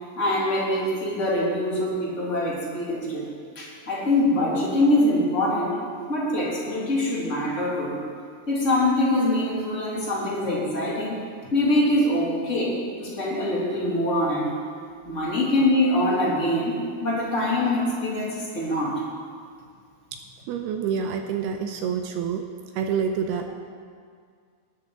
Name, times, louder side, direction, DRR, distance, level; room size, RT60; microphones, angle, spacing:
voice 1, 0.2-3.3 3.6-5.8 6.1-8.0 8.5-11.2 11.5-14.5 15.0-16.7 17.0-19.0, left 1 dB, 25° left, -6 dB, 2.0 m, -24 dB
voice 2, 20.5-22.4 22.7-23.5, right 7 dB, 80° right, 5 dB, 2.4 m, -27 dB
18.5 x 10.0 x 3.8 m, 2.1 s
omnidirectional pair, 5.0 m